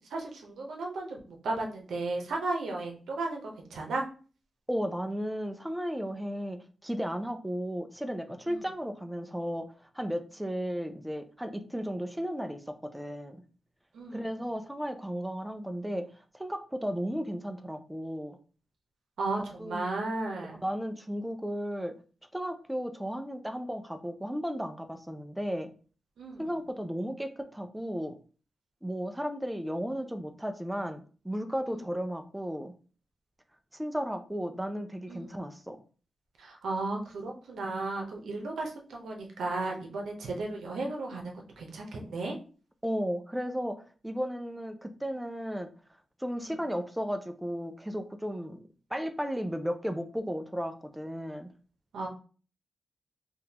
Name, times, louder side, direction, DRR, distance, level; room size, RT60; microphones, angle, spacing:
voice 1, 0.0-4.0 8.5-8.6 13.9-14.2 19.2-20.6 26.2-26.5 31.7-31.8 35.1-35.3 36.4-42.4 46.4-46.6 51.9-52.1, right 2 dB, 90° right, 1 dB, 0.8 m, -35 dB
voice 2, 4.7-9.7 9.9-13.4 14.1-16.0 16.3-18.4 19.4-19.8 20.6-21.9 22.3-25.7 26.4-28.2 28.8-32.7 33.7-35.8 42.8-43.8 44.0-45.7 46.2-51.5, equal, 5° right, 7 dB, 0.3 m, -34 dB
3.6 x 2.4 x 2.8 m, 0.39 s
wide cardioid pair, 100°, 0 cm